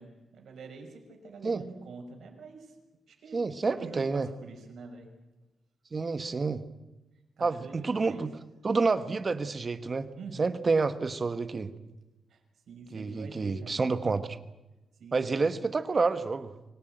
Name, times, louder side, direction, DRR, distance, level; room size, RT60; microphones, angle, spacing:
voice 1, 0.0-2.8 3.1-3.4 3.6-5.1 7.4-8.3 10.1-10.5 12.3-12.4 12.7-13.8 15.0-15.3, right 4 dB, 65° right, 3 dB, 5.9 m, -46 dB
voice 2, 3.3-4.3 5.9-6.6 7.4-8.3 8.6-10.1 10.4-11.7 12.9-14.3 15.1-16.5, right 4 dB, 30° right, 11 dB, 1.3 m, -28 dB
24.5 x 19.0 x 9.2 m, 1.1 s
wide cardioid pair, 165°, 0 cm